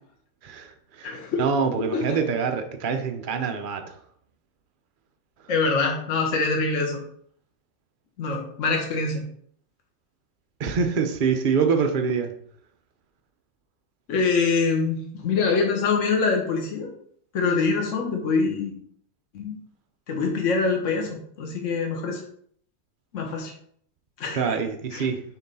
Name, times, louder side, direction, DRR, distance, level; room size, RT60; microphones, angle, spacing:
voice 1, 0.4-4.0 10.6-12.3 24.3-25.2, right 5 dB, 55° right, 6 dB, 0.5 m, -25 dB
voice 2, 1.0-1.4 1.9-2.2 5.5-7.0 8.2-9.2 14.1-16.9 17.3-18.7 19.3-19.6 20.1-22.2 23.1-23.5 24.2-24.6 24.9-25.1, left 4 dB, 45° left, 2 dB, 1.6 m, -24 dB
7.0 x 3.8 x 5.5 m, 0.62 s
omnidirectional pair, 2.0 m